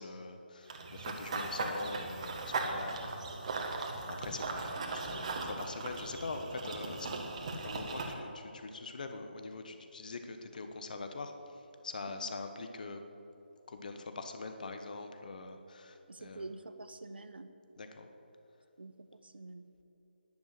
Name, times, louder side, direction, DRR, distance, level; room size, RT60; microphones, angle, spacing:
voice 1, 0.0-7.3 7.6-11.3 11.8-13.0 13.7-16.5 17.8-18.1, left 3 dB, 50° left, 7 dB, 1.2 m, -43 dB
Run / Bird vocalization bird call bird song, 0.7-8.1, right 3 dB, 35° right, 1.6 m, -38 dB
voice 2, 16.1-17.5 18.8-19.8, right 2 dB, 70° right, 10 dB, 0.8 m, -47 dB
10.5 x 10.5 x 8.2 m, 2.9 s
figure-of-eight pair, 150°, 6 cm